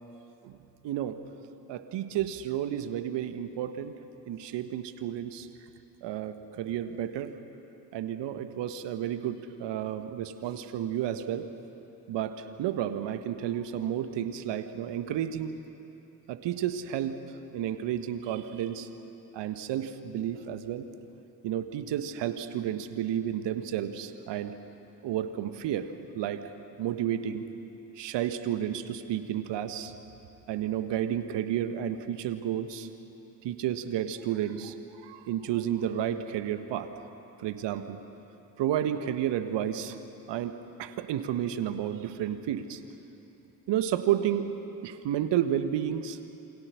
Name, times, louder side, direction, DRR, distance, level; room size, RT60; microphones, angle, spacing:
voice 1, 0.8-1.2 1.7-3.9 4.3-5.5 6.0-7.3 7.9-11.4 12.1-15.5 16.3-17.2 17.5-18.9 19.3-20.8 21.4-24.5 25.0-25.9 26.1-26.4 26.8-27.4 28.0-29.9 30.5-32.9 33.4-34.7 35.0-36.9 37.4-38.0 38.6-40.0 40.3-42.8 43.7-44.5 44.8-46.2, right 10 dB, 55° right, 10 dB, 1.4 m, -31 dB
28.0 x 24.5 x 6.4 m, 2.9 s
figure-of-eight pair, 45°, 50 cm